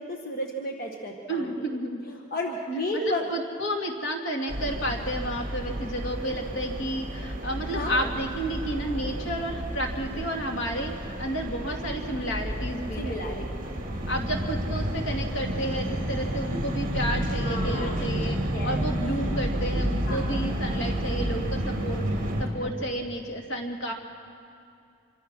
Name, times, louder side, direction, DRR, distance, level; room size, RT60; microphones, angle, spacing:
voice 1, 0.0-1.5 2.1-3.2 7.6-8.1 13.0-13.4 14.0-14.1 17.4-18.0 18.5-18.8 20.1-20.3 22.6-22.9, left 1 dB, 45° left, 1 dB, 1.4 m, -33 dB
voice 2, 1.3-2.1 3.0-13.2 14.1-23.9, right 1 dB, 70° left, 2 dB, 2.4 m, -31 dB
sound 1, 4.5-22.4, equal, 40° right, 2.8 m, -31 dB
26.0 x 23.5 x 6.2 m, 2.5 s
head